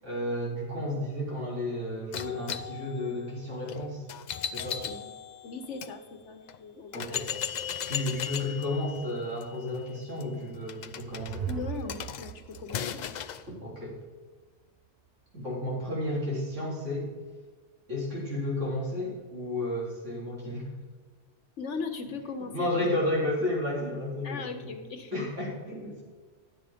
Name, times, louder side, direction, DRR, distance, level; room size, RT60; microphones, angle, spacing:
voice 1, 0.0-4.0 4.5-4.9 6.9-7.2 7.9-11.6 13.6-14.0 15.3-17.1 17.9-20.6 22.5-24.7 25.1-26.0, left 1 dB, 90° right, -5 dB, 4.1 m, -32 dB
sound 1, 2.1-5.9 6.5-6.6 6.9-13.5, left 8 dB, 60° left, 0.5 m, -37 dB
voice 2, 5.4-7.2 11.5-13.1 21.6-22.8 24.2-25.1, left 4 dB, 75° left, 6 dB, 1.4 m, -38 dB
sound 2, 10.6-13.9, right 9 dB, 70° right, 0.9 m, -40 dB
10.5 x 7.7 x 5.1 m, 1.4 s
omnidirectional pair, 1.2 m